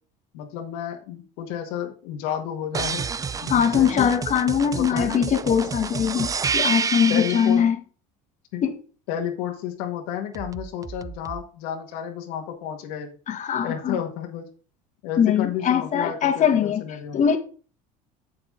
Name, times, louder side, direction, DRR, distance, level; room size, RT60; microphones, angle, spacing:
voice 1, 0.3-3.0 3.4-4.1 4.7-5.2 7.1-7.6 8.5-8.6 9.1-13.1 13.6-14.5 15.0-17.2, left 9 dB, 80° left, 1.8 m, -31 dB
sound 1, 2.7-7.6 10.3-11.4, right 6 dB, 20° right, 0.4 m, -29 dB
voice 2, 3.5-7.8 8.6-8.8 13.3-14.0 15.2-16.8 17.1-17.4, left 8 dB, 45° left, 1.6 m, -21 dB
7.7 x 7.2 x 3.8 m
supercardioid pair, 95°, 18 cm